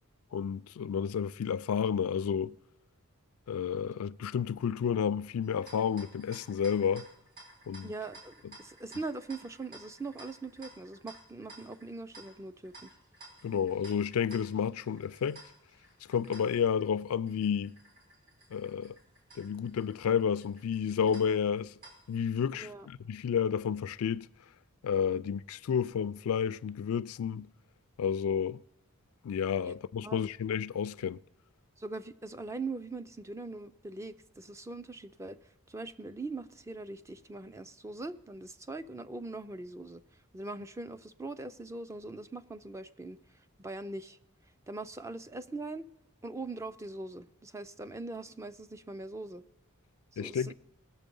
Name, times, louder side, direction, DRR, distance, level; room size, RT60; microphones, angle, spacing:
voice 1, 0.3-2.6 3.5-7.1 7.7-7.9 13.4-15.4 16.1-17.8 18.5-19.0 19.4-21.7 22.1-24.3 24.8-27.5 28.0-28.6 29.2-31.2 50.2-50.5, left 7 dB, 75° left, 0.3 m, -31 dB
sound 1, 5.4-22.3, right 2 dB, 45° right, 4.3 m, -55 dB
voice 2, 7.8-12.9 22.5-22.9 29.6-29.8 30.0-30.3 31.8-35.4 35.7-40.0 40.3-43.2 43.6-44.2 44.7-45.8 46.2-49.4 50.1-50.5, right 3 dB, 15° right, 0.3 m, -41 dB
19.5 x 6.9 x 5.3 m
head